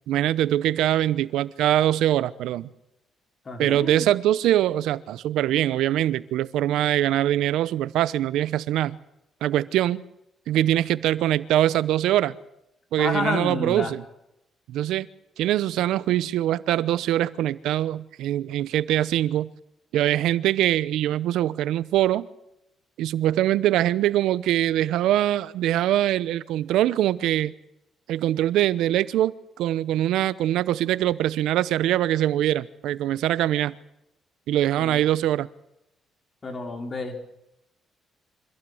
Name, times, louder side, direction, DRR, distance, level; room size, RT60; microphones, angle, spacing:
voice 1, 0.1-2.7 3.6-9.0 9.4-10.0 10.5-12.4 12.9-14.0 14.7-15.1 15.4-19.5 19.9-22.3 23.0-27.5 28.1-33.7 34.5-35.5, right 13 dB, 85° right, 0.8 m, -23 dB
voice 2, 3.4-4.1 13.0-13.9 34.8-35.0 36.4-37.2, left 3 dB, 35° left, 4.8 m, -30 dB
25.5 x 15.5 x 7.9 m
cardioid pair, 90°, 0 cm